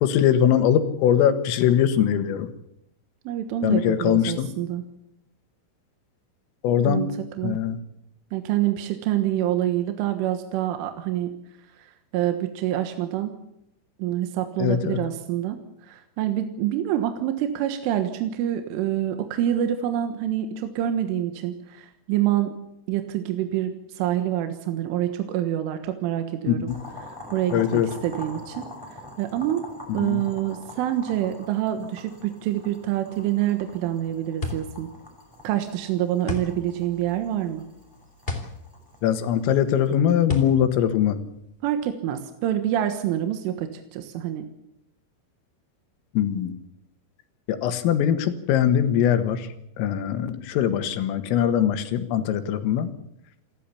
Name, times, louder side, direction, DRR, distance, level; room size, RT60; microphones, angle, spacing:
voice 1, 0.0-2.5 3.6-4.5 6.6-7.1 7.4-7.8 14.6-15.0 26.5-26.8 27.5-27.9 30.0-30.2 39.0-41.2 46.2-46.5 47.5-49.5 49.8-52.9, left 9 dB, 85° left, 9 dB, 4.2 m, -21 dB
voice 2, 3.3-4.8 6.8-7.1 7.4-7.6 8.3-11.3 12.1-13.3 14.0-22.5 22.9-26.7 27.1-28.7 29.2-29.7 29.9-34.9 35.4-37.7 41.6-44.5, right 12 dB, 80° right, 7 dB, 3.8 m, -26 dB
Boiling, 26.7-39.9, left 2 dB, 5° right, 5.3 m, -44 dB
sound 1, 33.8-41.9, left 2 dB, 15° left, 2.5 m, -35 dB
28.0 x 13.5 x 8.5 m, 0.81 s
omnidirectional pair, 5.8 m